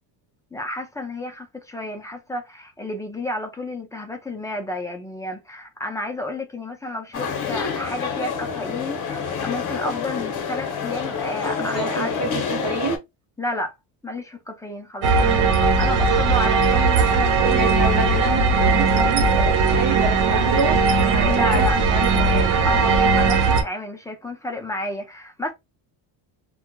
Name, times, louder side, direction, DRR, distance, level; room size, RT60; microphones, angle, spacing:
voice 1, 0.5-12.2 13.4-13.7 14.0-17.7 21.1-21.8 22.6-25.5, left 1 dB, 5° left, 0.4 m, -31 dB
sound 1, 7.1-13.0, left 6 dB, 40° left, 0.9 m, -28 dB
voice 2, 11.6-13.0 17.5-20.8 21.1-22.6, right 3 dB, 30° right, 0.8 m, -28 dB
sound 2, 15.0-23.6, right 4 dB, 70° right, 0.9 m, -18 dB
2.8 x 2.2 x 2.2 m
cardioid pair, 125°, 50 cm